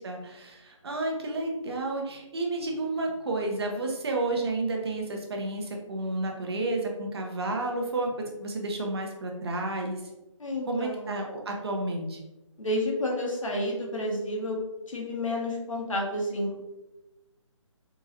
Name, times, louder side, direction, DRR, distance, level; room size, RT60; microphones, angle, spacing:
voice 1, 0.0-10.0 10.7-12.2, right 2 dB, 50° right, 1 dB, 0.8 m, -31 dB
voice 2, 10.4-11.2 12.6-14.6 14.9-16.6, left 1 dB, 80° left, -1 dB, 1.1 m, -30 dB
3.8 x 2.6 x 2.6 m, 0.99 s
figure-of-eight pair, 150°, 16 cm